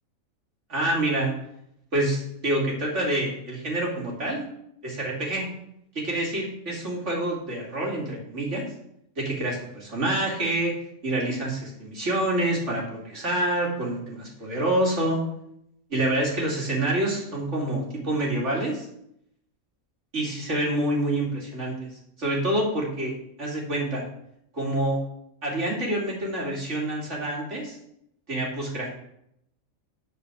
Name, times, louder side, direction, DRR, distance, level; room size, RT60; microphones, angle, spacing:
voice 1, 0.7-1.3 1.9-4.5 4.8-5.5 5.9-8.6 9.2-10.7 11.0-15.2 15.9-18.9 20.1-21.9 22.2-23.1 23.4-24.0 24.5-25.0 25.4-27.8 28.3-28.9, right 1 dB, 55° right, -4 dB, 3.1 m, -27 dB
11.0 x 5.1 x 6.2 m, 0.76 s
omnidirectional pair, 1.5 m